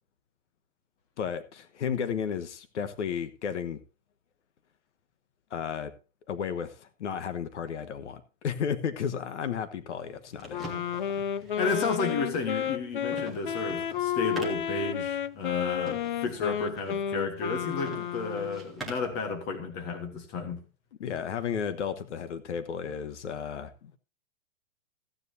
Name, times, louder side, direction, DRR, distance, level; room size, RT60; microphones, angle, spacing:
voice 1, 1.2-3.8 5.5-5.9 6.3-10.7 21.0-23.9, left 7 dB, 65° left, 12 dB, 1.2 m, -33 dB
sound 1, 10.0-19.2, right 3 dB, ahead, 0.6 m, -46 dB
Wind instrument woodwind instrument, 10.5-18.7, left 9 dB, 45° left, 0.4 m, -32 dB
voice 2, 11.6-20.6, left 4 dB, 20° left, 5 dB, 1.3 m, -32 dB
14.5 x 9.7 x 2.7 m, 0.33 s
hypercardioid pair, 180°, 38 cm